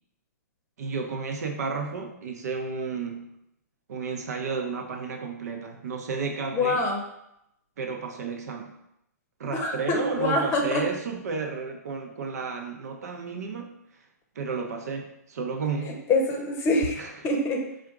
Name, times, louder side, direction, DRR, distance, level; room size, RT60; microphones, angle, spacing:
voice 1, 0.8-3.3 3.9-6.9 7.8-8.8 9.4-13.7 14.3-16.1 16.9-17.3, right 4 dB, 65° right, 3 dB, 0.8 m, -32 dB
voice 2, 6.5-7.0 9.5-10.8 16.1-17.0 17.2-17.6, left 2 dB, 25° left, 2 dB, 0.8 m, -25 dB
4.2 x 2.6 x 4.6 m, 0.81 s
hypercardioid pair, 125°, 9 cm